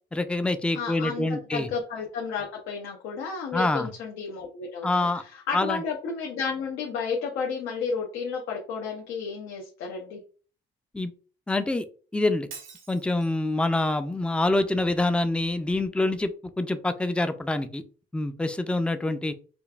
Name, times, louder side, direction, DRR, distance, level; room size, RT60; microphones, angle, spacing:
voice 1, 0.1-1.7 3.5-3.9 4.8-5.2 5.5-5.8 10.9-11.1 11.5-11.8 12.1-12.5 12.9-16.3 16.6-17.8 18.1-19.3, left 2 dB, 5° left, 10 dB, 0.4 m, -26 dB
voice 2, 0.7-1.3 1.5-10.2, left 5 dB, 85° left, -1 dB, 0.8 m, -32 dB
Shatter, 12.5-13.5, right 6 dB, 85° right, 1.1 m, -45 dB
5.1 x 2.4 x 2.3 m, 0.39 s
cardioid pair, 85°, 20 cm